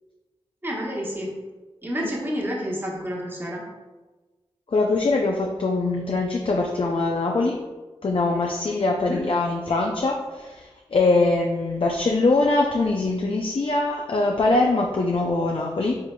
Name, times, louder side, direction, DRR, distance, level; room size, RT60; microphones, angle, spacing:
voice 1, 0.6-1.5 1.8-3.6 9.0-9.3, equal, 20° right, -3 dB, 1.1 m, -29 dB
voice 2, 4.7-7.6 8.0-16.0, left 3 dB, 50° left, 0 dB, 0.5 m, -22 dB
4.5 x 3.7 x 2.2 m, 1.2 s
cardioid pair, 40°, 11 cm